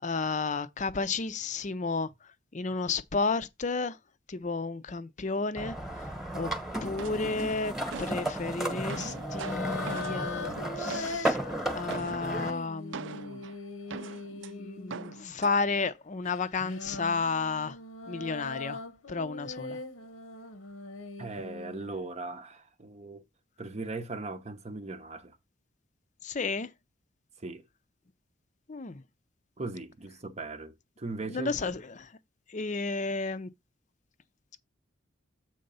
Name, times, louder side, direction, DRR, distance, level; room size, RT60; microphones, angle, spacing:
voice 1, 0.0-2.1 2.5-4.0 4.3-5.8 6.3-6.5 6.8-11.4 11.7-13.4 14.3-17.8 18.1-18.8 19.1-19.8 26.2-26.7 28.7-29.0 31.3-32.1 32.5-33.5, left 4 dB, 35° left, 0.6 m, -32 dB
sound 1, 5.6-12.5, right 1 dB, ahead, 1.2 m, -34 dB
sound 2, 7.0-8.3 8.7-11.4 11.9-12.3 12.9-14.5 14.9-15.6, right 5 dB, 65° right, 0.5 m, -42 dB
sound 3, 7.1-7.4 8.8-15.4 16.3-21.9, left 3 dB, 85° left, 1.1 m, -41 dB
voice 2, 21.2-23.2 23.6-25.4 27.4-27.6 29.6-31.5, right 3 dB, 35° right, 0.7 m, -39 dB
7.8 x 3.7 x 5.5 m
head